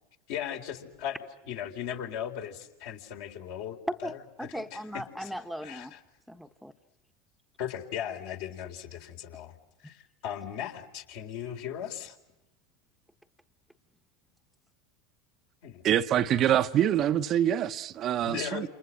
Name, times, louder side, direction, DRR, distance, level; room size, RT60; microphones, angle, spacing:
voice 1, 0.3-1.2 1.5-4.1 4.5-5.3 5.6-6.0 7.6-9.5 9.8-12.2 15.6-15.8 18.2-18.7, left 9 dB, 65° left, 4.1 m, -37 dB
voice 2, 4.0-5.9 6.3-6.7, equal, ahead, 1.3 m, -39 dB
voice 3, 15.8-18.7, right 11 dB, 45° right, 1.0 m, -25 dB
29.0 x 29.0 x 6.5 m
hypercardioid pair, 80°, 0 cm